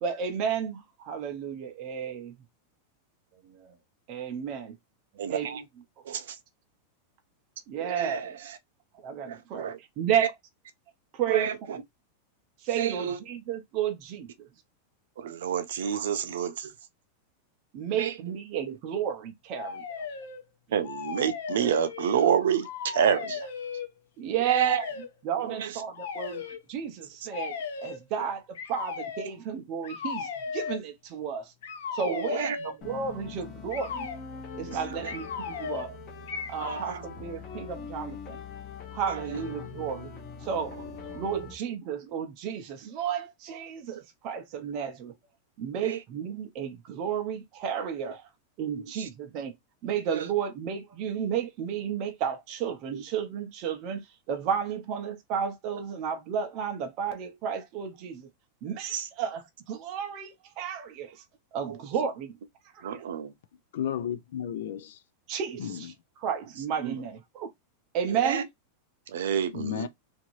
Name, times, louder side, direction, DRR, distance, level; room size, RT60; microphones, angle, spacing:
voice 1, 0.0-2.3 3.6-3.7 4.1-4.7 5.3-5.5 7.7-8.2 9.0-10.3 11.1-11.5 12.6-14.3 17.7-20.0 24.2-24.8 25.2-26.4 26.7-27.5 27.8-31.5 31.9-34.1 34.6-35.9 36.5-38.4 38.9-40.1 40.4-40.7 41.1-45.1 45.6-48.3 48.6-49.5 49.8-54.0 54.3-58.3 58.6-59.4 59.7-61.2 61.5-62.3 62.7-63.0 65.3-65.9 66.2-67.5 67.9-68.4, right 8 dB, 35° right, 0.5 m, -32 dB
voice 2, 5.2-5.6 6.0-6.4 7.8-8.6 9.3-9.8 10.2-10.3 11.3-11.8 12.7-13.2 15.2-16.7 17.8-18.4 18.7-18.8 20.7-23.5 24.4-24.9 25.4-25.8 26.3-26.4 32.1-32.6 34.7-35.1 36.6-37.0 37.3-37.4 39.1-39.5 40.7-40.8 41.3-41.5 44.6-44.8 45.8-46.0 48.0-48.1 48.7-49.1 50.1-50.3 52.9-53.0 58.9-59.1 61.7-61.8 62.8-63.3 66.8-67.0 68.1-68.4 69.1-69.9, right 8 dB, 85° right, 0.6 m, -30 dB
sound 1, 19.5-20.4 20.8-22.3 22.6-23.9 24.6-25.1 25.9-26.6 27.3-28.0 28.6-29.3 29.8-30.8 31.6-32.8 33.7-34.2 35.1-35.9 36.3-36.9, left 6 dB, 90° left, 0.7 m, -36 dB
sound 2, 32.8-41.6, left 5 dB, 30° left, 0.7 m, -42 dB
voice 3, 63.7-65.0 65.6-66.0 69.5-69.9, left 10 dB, 70° left, 0.3 m, -33 dB
2.8 x 2.5 x 2.9 m
supercardioid pair, 170°, 0 cm